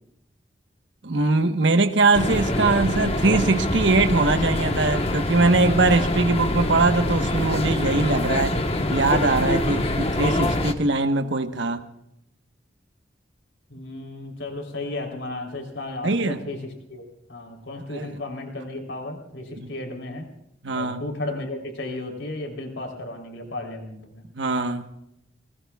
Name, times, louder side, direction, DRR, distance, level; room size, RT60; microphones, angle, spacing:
voice 1, 1.0-8.6 8.9-11.8 16.0-16.4 17.9-18.1 19.6-19.7 20.6-21.0 24.3-24.8, right 3 dB, 85° right, 1.2 m, -21 dB
sound 1, 2.1-10.7, left 1 dB, 30° left, 1.2 m, -25 dB
voice 2, 13.7-20.3 20.7-24.2, left 2 dB, 90° left, 3.7 m, -34 dB
29.0 x 20.5 x 2.4 m
head